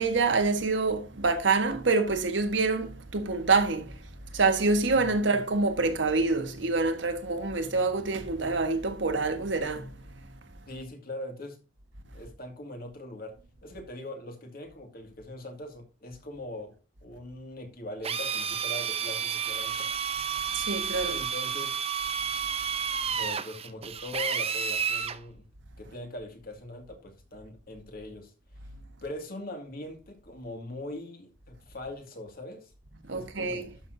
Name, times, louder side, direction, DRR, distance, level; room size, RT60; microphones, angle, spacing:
voice 1, 0.0-4.0 4.3-9.9 20.5-21.2 33.1-33.7, right 3 dB, 75° right, 1.4 m, -26 dB
voice 2, 10.7-11.6 12.1-16.8 17.0-19.9 21.1-21.8 23.2-25.5 25.8-28.3 29.0-32.7 33.1-33.8, left 1 dB, 50° left, 2.3 m, -41 dB
Drill, 18.0-25.2, right 7 dB, 35° right, 0.7 m, -31 dB
11.5 x 6.4 x 2.7 m
head